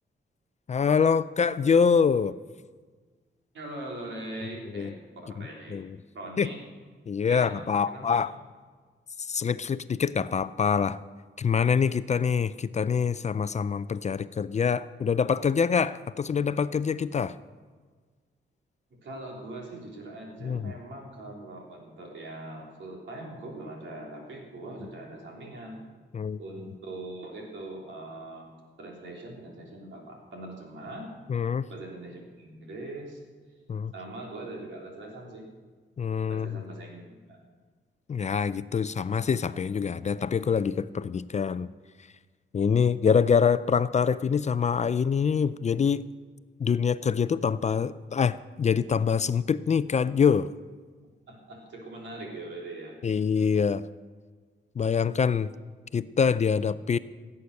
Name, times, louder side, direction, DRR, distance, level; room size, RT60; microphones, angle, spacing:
voice 1, 0.7-2.3 4.7-4.9 5.7-5.9 6.4-6.5 7.1-8.3 9.3-11.0 11.4-17.3 20.4-20.7 26.1-26.4 31.3-31.7 33.7-33.9 36.0-36.6 38.1-41.7 42.5-46.0 46.6-50.5 53.0-53.8 54.8-55.5 55.9-57.0, left 6 dB, 35° left, 15 dB, 0.4 m, -25 dB
voice 2, 3.5-5.8 6.1-6.6 7.3-8.3 19.0-25.8 26.4-28.5 28.8-31.1 31.7-33.2 33.9-35.4 36.3-37.4 51.3-52.9 56.5-56.7, right 2 dB, 80° right, -1 dB, 3.4 m, -41 dB
16.5 x 8.5 x 6.5 m, 1.5 s
cardioid pair, 95°, 19 cm